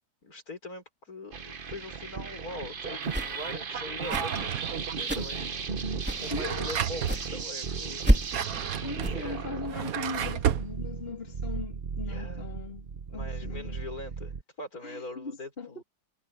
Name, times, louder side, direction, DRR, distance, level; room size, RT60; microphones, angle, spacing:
voice 1, 0.2-8.1 9.0-9.5 12.0-12.5 13.1-15.8, left 2 dB, 60° left, 5.9 m, -42 dB
sound 1, 1.3-14.4, right 5 dB, 40° right, 1.0 m, -36 dB
sound 2, 3.0-3.5 4.0-4.4 5.0-5.4 6.0-6.3 7.0-7.3 8.0-8.4 9.0-9.2, equal, 5° right, 2.6 m, -28 dB
Drawer open or close, 4.1-5.0 6.1-7.2 8.1-10.7, right 9 dB, 65° right, 1.3 m, -32 dB
voice 2, 6.3-6.7 8.8-13.8 14.8-15.8, left 3 dB, 35° left, 3.5 m, -39 dB
omnidirectional pair, 1.7 m